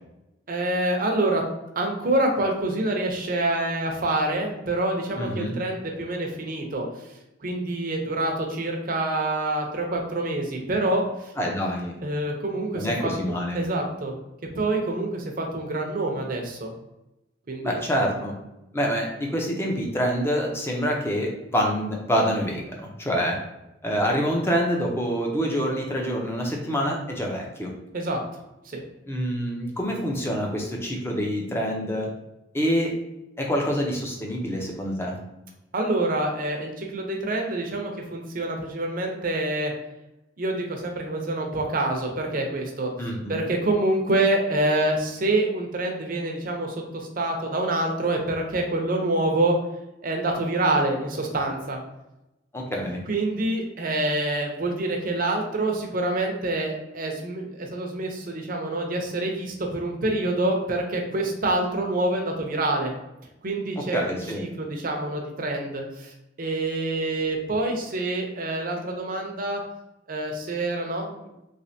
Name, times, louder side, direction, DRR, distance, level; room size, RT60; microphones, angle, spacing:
voice 1, 0.5-1.4 1.8-7.1 7.4-11.3 12.0-13.1 13.5-14.1 14.5-16.7 17.5-17.8 27.9-28.2 28.6-28.8 35.7-39.7 40.4-42.9 43.3-49.6 50.0-51.8 53.1-62.9 63.4-69.6 70.1-71.1, right 2 dB, 50° right, 2 dB, 0.7 m, -26 dB
voice 2, 5.1-5.5 11.4-11.9 12.7-13.6 17.6-18.3 18.7-23.4 23.8-27.7 29.1-32.1 32.5-32.9 33.4-35.2 43.0-43.4 52.5-53.0 63.9-64.4, equal, 15° left, -1 dB, 0.6 m, -26 dB
3.3 x 3.2 x 2.7 m, 0.93 s
head